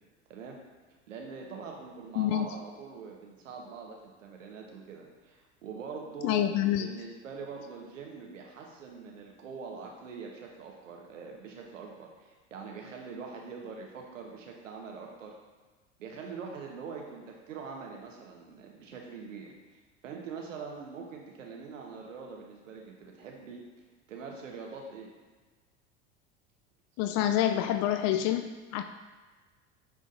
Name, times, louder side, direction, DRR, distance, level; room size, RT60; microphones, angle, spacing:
voice 1, 1.1-6.5 6.8-15.3 16.0-23.6 24.1-25.1, right 5 dB, 85° right, 0 dB, 1.2 m, -43 dB
voice 2, 2.2-2.5 6.2-6.9 27.0-28.8, left 11 dB, 45° left, 7 dB, 0.5 m, -27 dB
10.5 x 3.9 x 2.6 m, 1.3 s
hypercardioid pair, 75°, 37 cm